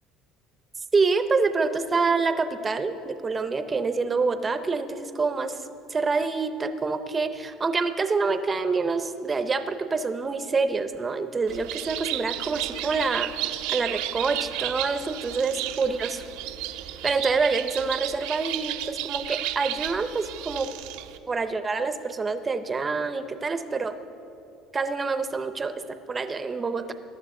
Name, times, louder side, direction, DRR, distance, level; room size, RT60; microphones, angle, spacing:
voice 1, 0.9-5.6 5.9-13.3 13.7-16.2 17.0-20.7 21.3-23.9 24.7-25.7 26.1-26.9, right 4 dB, 20° right, 10 dB, 0.5 m, -26 dB
Bird, 11.5-21.2, right 14 dB, 90° right, 0.5 m, -33 dB
18.5 x 12.0 x 3.7 m, 2.9 s
cardioid pair, 160°, 0 cm